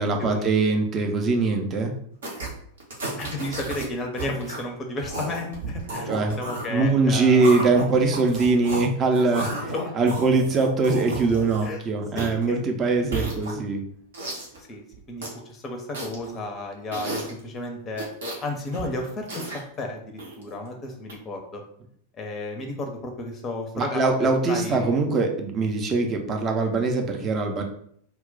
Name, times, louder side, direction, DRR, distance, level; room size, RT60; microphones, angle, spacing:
voice 1, 0.0-1.9 6.1-6.4 6.7-13.8 23.7-27.6, right 3 dB, 25° right, 3 dB, 0.5 m, -22 dB
sound 1, 2.2-2.5 2.8-3.8 4.1-4.6 5.0-8.8 9.1-11.8 12.2-12.4 13.0-13.8 14.1-14.6 14.9-15.4 15.9-16.4 16.9-17.4 17.9-18.4 18.7-19.6 20.2-20.5 21.1-21.2, right 2 dB, 65° right, 0.7 m, -33 dB
voice 2, 3.2-7.5 9.3-9.9 11.6-11.8 12.1-12.6 12.8-13.2 14.6-14.8 15.1-18.1 18.4-21.6 22.2-24.0 24.5-25.0, left 2 dB, 25° left, 3 dB, 0.5 m, -33 dB
2.1 x 2.0 x 3.7 m, 0.65 s
figure-of-eight pair, 90°, 0 cm